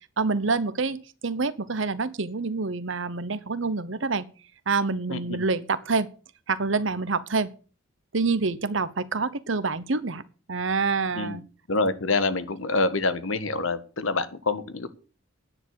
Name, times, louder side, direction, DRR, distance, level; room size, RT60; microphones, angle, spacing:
voice 1, 0.2-4.3 4.7-6.1 6.5-7.5 8.1-10.2 10.5-11.4, right 4 dB, 70° right, 15 dB, 1.0 m, -27 dB
voice 2, 11.7-14.9, left 3 dB, 80° left, 12 dB, 1.4 m, -26 dB
9.9 x 9.7 x 6.5 m, 0.38 s
head